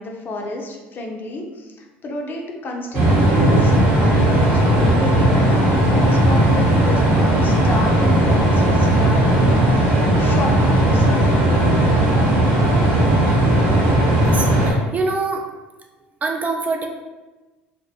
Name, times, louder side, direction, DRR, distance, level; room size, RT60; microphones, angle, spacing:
voice 1, 0.0-11.5, left 1 dB, 40° left, 1 dB, 0.5 m, -31 dB
sound 1, 2.9-14.7, right 1 dB, 45° right, 1.0 m, -16 dB
voice 2, 14.2-15.4 16.2-16.9, right 3 dB, 30° right, 2 dB, 0.3 m, -24 dB
2.5 x 2.1 x 2.7 m, 1.2 s
hypercardioid pair, 75°, 5 cm